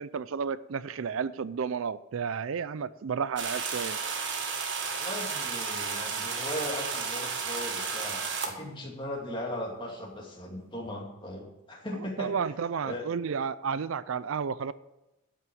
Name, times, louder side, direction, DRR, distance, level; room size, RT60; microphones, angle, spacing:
voice 1, 0.0-4.0 11.9-14.7, right 6 dB, 75° right, 17 dB, 0.4 m, -32 dB
sound 1, 3.4-8.5, right 5 dB, 55° right, 1.6 m, -33 dB
voice 2, 5.0-12.3 12.8-13.0, left 1 dB, 25° left, -1 dB, 2.4 m, -38 dB
12.5 x 6.1 x 7.8 m, 0.98 s
head